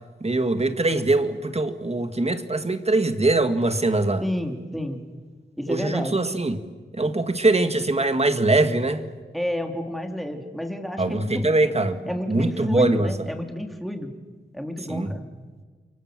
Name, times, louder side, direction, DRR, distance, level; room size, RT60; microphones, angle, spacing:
voice 1, 0.2-4.2 5.7-6.6 7.0-9.0 11.0-12.0 12.3-13.1 14.9-15.1, right 2 dB, 35° right, 1.9 m, -22 dB
voice 2, 4.2-5.0 5.6-6.2 9.3-11.5 12.1-14.1 14.5-15.3, left 1 dB, ahead, 3.3 m, -30 dB
29.5 x 24.0 x 7.7 m
wide cardioid pair, 65°, 19 cm